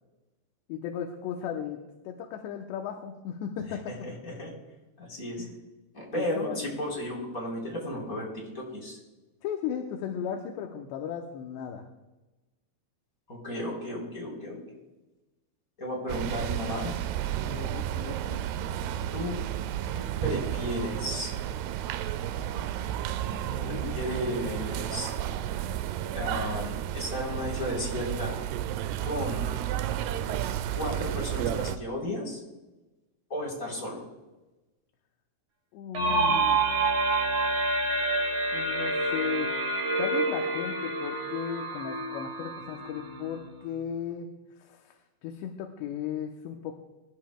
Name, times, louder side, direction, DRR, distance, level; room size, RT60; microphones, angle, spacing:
voice 1, 0.7-1.8 2.0-3.9 5.4-5.5 6.1-6.7 9.4-11.9 17.4-18.5 23.3-23.9 35.7-36.6 38.5-39.5 40.0-44.3 44.6-46.8, left 8 dB, 80° left, 2 dB, 3.0 m, -36 dB
voice 2, 3.9-4.5 5.0-5.4 5.9-8.3 8.5-9.0 13.3-14.6 15.8-16.9 17.3-17.4 19.1-19.3 19.8-21.3 23.7-25.1 26.1-28.4 29.0-29.4 30.7-32.4 33.3-34.0, equal, 20° left, -2 dB, 4.1 m, -34 dB
sound 1, 16.1-31.8, right 11 dB, 80° right, 2.5 m, -32 dB
sound 2, 35.9-43.6, right 2 dB, 60° right, 1.3 m, -28 dB
25.0 x 12.5 x 2.3 m, 1.1 s
omnidirectional pair, 5.1 m